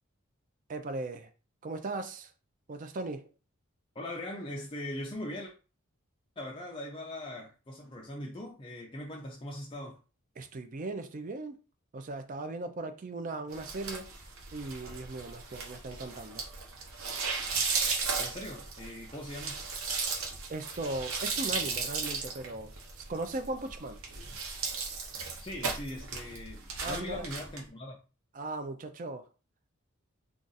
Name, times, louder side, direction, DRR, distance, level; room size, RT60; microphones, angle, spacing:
voice 1, 0.7-1.3 1.6-2.3 2.7-3.3 10.4-11.6 11.9-14.1 14.5-16.4 20.5-24.0 26.8-27.2 28.3-29.3, right 2 dB, 40° right, 0.4 m, -38 dB
voice 2, 4.0-5.5 6.4-10.0 18.2-19.5 25.4-28.0, left 1 dB, 25° left, 0.4 m, -40 dB
sound 1, 13.5-27.6, right 4 dB, 75° right, 0.9 m, -36 dB
2.4 x 2.4 x 3.9 m
head